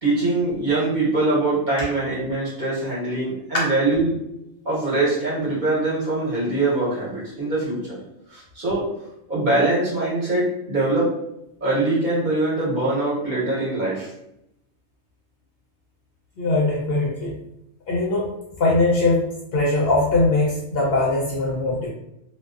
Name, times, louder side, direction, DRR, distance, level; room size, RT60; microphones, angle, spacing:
voice 1, 0.0-4.2 4.6-8.0 8.3-8.9 9.3-11.1 11.6-14.1, right 2 dB, 40° right, -8 dB, 0.9 m, -23 dB
voice 2, 16.4-17.4 17.9-18.3 18.6-21.9, left 2 dB, 60° left, -3 dB, 0.7 m, -21 dB
2.3 x 2.2 x 2.3 m, 0.82 s
omnidirectional pair, 1.4 m